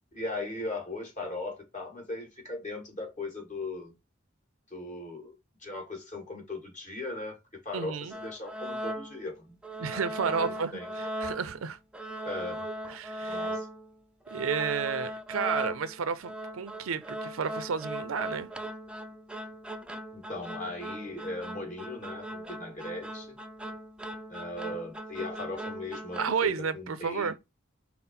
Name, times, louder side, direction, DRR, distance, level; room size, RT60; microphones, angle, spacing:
voice 1, 0.1-3.9 4.7-5.3 5.6-7.4 7.6-9.6 9.9-10.9 12.2-12.7 13.3-13.7 20.1-23.4 24.3-27.3, left 2 dB, 40° left, 1.9 m, -38 dB
voice 2, 7.7-8.1 9.8-11.8 12.9-13.5 14.3-18.5 26.2-27.3, right 6 dB, 80° right, 0.5 m, -32 dB
sound 1, 8.1-9.3 9.6-11.7 11.9-13.9 14.3-26.5, right 1 dB, 5° right, 0.4 m, -38 dB
5.5 x 2.0 x 4.2 m
head